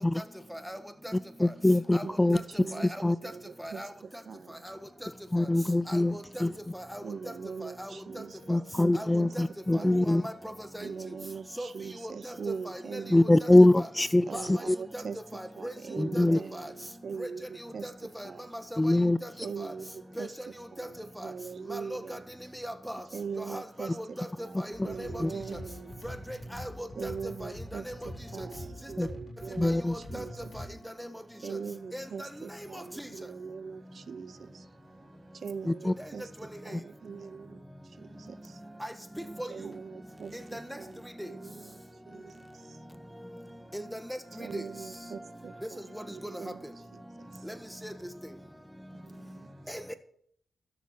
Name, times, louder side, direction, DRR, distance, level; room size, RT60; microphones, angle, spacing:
voice 1, 1.4-2.7 3.0-3.2 5.3-6.1 6.4-6.5 8.5-10.2 13.1-14.8 16.0-16.4 18.8-19.2 25.2-25.3 29.0-29.1 29.6-29.9 35.7-35.9, left 1 dB, 20° left, 0.3 m, -23 dB
voice 2, 2.0-2.9 3.2-3.8 4.3-4.6 7.0-8.4 8.8-9.3 9.7-10.0 10.8-13.2 14.3-15.2 15.6-17.9 18.2-18.4 19.4-20.3 20.7-22.2 23.1-24.0 24.4-26.0 27.0-30.5 31.4-34.5 35.4-36.3 36.6-37.6 38.0-38.3 39.5-41.7 42.1-42.3 44.4-46.6, right 5 dB, 70° right, 0.6 m, -41 dB
voice 3, 5.9-6.4 6.7-7.0 7.6-7.9 8.9-9.1 9.3-9.4 9.7-10.9 11.6-11.7 12.0-12.3 12.6-13.0 13.4-13.5 13.8-13.9 14.3-14.4 14.9-15.0 15.3-15.7 16.1-16.2 16.5-16.7 17.2-17.3 17.6-18.9 19.2-19.3 19.6-19.7 20.2-20.3 20.8-20.9 21.2-21.3 21.7-22.2 22.5-23.0 23.4-24.3 24.6-25.2 26.0-27.1 27.4-27.9 28.4-28.5 29.6-30.2 30.5-30.6 31.0-31.1 31.5-31.6 31.9-32.3 32.7-33.1 36.7-36.8 38.8-39.5 40.5-40.8 41.2-41.3 43.7-44.0 44.4-44.6 45.9-46.0 47.4-47.5 47.8-47.9 49.7-49.9, equal, ahead, 1.4 m, -39 dB
sound 1, 24.7-30.7, left 1 dB, 70° left, 4.0 m, -44 dB
12.5 x 7.0 x 6.0 m
cardioid pair, 55°, 0 cm